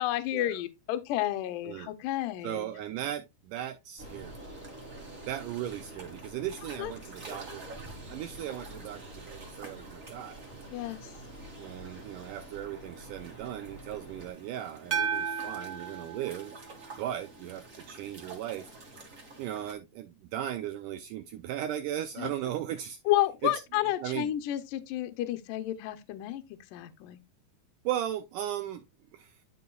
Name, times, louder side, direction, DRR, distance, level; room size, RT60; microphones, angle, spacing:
voice 1, 0.0-2.7 6.8-6.9 10.7-11.0 22.2-22.3 23.1-26.4 26.7-27.2, left 14 dB, 75° left, 2.2 m, -31 dB
voice 2, 2.4-4.4 5.3-7.6 8.1-10.5 11.6-16.6 17.0-18.7 19.4-23.0 23.4-23.6 24.0-24.3 27.9-28.8 29.1-29.4, right 12 dB, 90° right, 1.8 m, -37 dB
sound 1, 4.0-14.3, right 1 dB, 20° left, 1.3 m, -48 dB
sound 2, 4.0-19.7, right 2 dB, 35° right, 1.4 m, -50 dB
sound 3, 14.9-17.3, right 7 dB, 60° right, 0.9 m, -34 dB
10.5 x 5.4 x 2.3 m
omnidirectional pair, 4.3 m